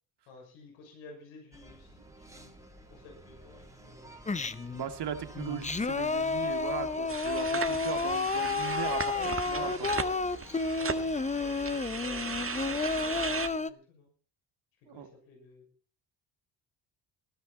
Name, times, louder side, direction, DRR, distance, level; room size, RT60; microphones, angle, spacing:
voice 1, 0.3-2.6 2.9-4.1 9.1-14.1 14.9-15.7, left 3 dB, 80° left, 2 dB, 6.6 m, -51 dB
sound 1, 1.5-13.5, right 1 dB, 5° right, 3.4 m, -50 dB
Singing, 4.3-4.8 5.3-13.7, left 4 dB, 15° left, 0.9 m, -31 dB
voice 2, 4.7-9.9 14.9-15.1, right 8 dB, 55° right, 7 dB, 2.5 m, -38 dB
sound 2, 7.1-13.5, right 5 dB, 25° right, 1.8 m, -37 dB
19.5 x 11.5 x 4.2 m, 0.40 s
supercardioid pair, 65°, 48 cm